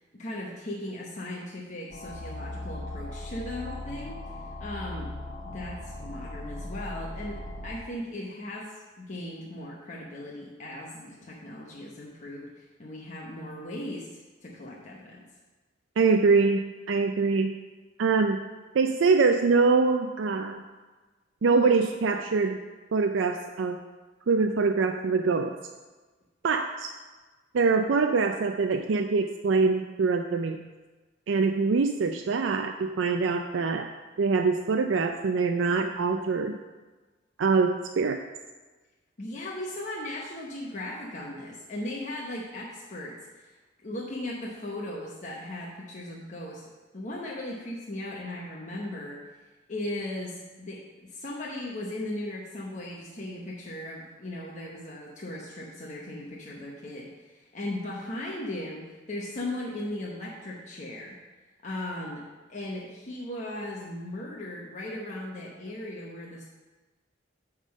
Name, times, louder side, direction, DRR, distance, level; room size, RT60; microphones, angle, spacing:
voice 1, 0.0-4.2 4.6-5.1 5.4-15.2 39.2-43.5 43.8-46.7 46.9-49.2 49.7-61.2 61.6-66.4, left 1 dB, 40° left, -4 dB, 0.9 m, -37 dB
sound 1, 1.9-7.8, left 1 dB, 80° left, 1.1 m, -38 dB
voice 2, 16.0-17.5 18.0-18.4 18.7-20.6 21.4-22.6 22.9-23.8 24.3-25.5 26.4-26.9 27.5-30.6 31.3-33.9 34.2-36.6 37.4-38.2, right 4 dB, 80° right, 5 dB, 0.4 m, -24 dB
9.1 x 3.7 x 6.3 m, 1.3 s
head